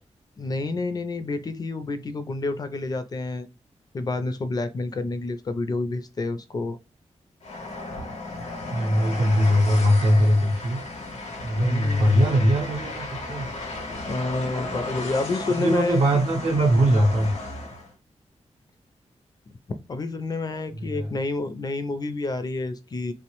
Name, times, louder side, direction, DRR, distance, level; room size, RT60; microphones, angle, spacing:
voice 1, 0.4-3.5 3.9-6.8 11.6-12.3 14.1-16.0 19.9-23.1, left 3 dB, 35° left, 0.4 m, -29 dB
Train, 7.4-17.9, left 2 dB, 75° left, 0.8 m, -35 dB
voice 2, 8.7-10.8 11.4-13.5 15.5-17.3 20.7-21.2, equal, 70° right, 0.6 m, -21 dB
3.1 x 2.1 x 2.9 m
wide cardioid pair, 105°, 12 cm